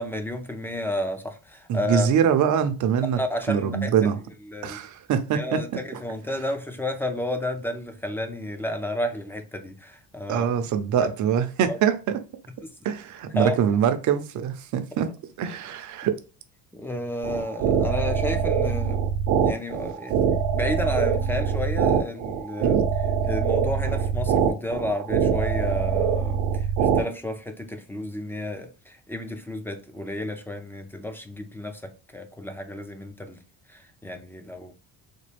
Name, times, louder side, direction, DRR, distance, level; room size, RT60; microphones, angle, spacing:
voice 1, 0.0-2.1 3.1-4.1 4.5-4.8 5.3-10.5 11.0-11.1 11.7-11.8 12.6-12.7 13.3-13.5 16.7-19.1 19.4-22.8 23.2-33.4 33.7-34.7, left 1 dB, 5° left, 0.5 m, -31 dB
voice 2, 1.7-3.2 3.5-4.2 4.6-5.8 10.3-11.9 12.8-15.1 15.4-16.1 22.6-22.8, right 8 dB, 55° right, 0.7 m, -23 dB
sound 1, 17.2-27.0, right 7 dB, 85° right, 0.8 m, -23 dB
4.2 x 2.2 x 3.2 m
cardioid pair, 125°, 36 cm